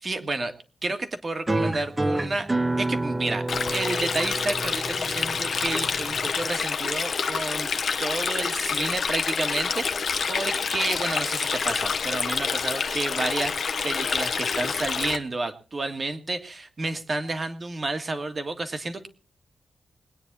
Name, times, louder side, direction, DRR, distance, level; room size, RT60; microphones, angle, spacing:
voice 1, 0.0-0.5 0.8-2.5 2.8-3.4 3.7-7.7 8.0-13.6 13.8-19.1, right 2 dB, 35° right, 7 dB, 1.9 m, -30 dB
sound 1, 1.5-6.5, right 2 dB, 15° right, 1.0 m, -29 dB
Stream, 3.5-15.2, left 5 dB, 60° left, 1.1 m, -27 dB
22.0 x 9.5 x 4.1 m, 0.37 s
wide cardioid pair, 145°, 0 cm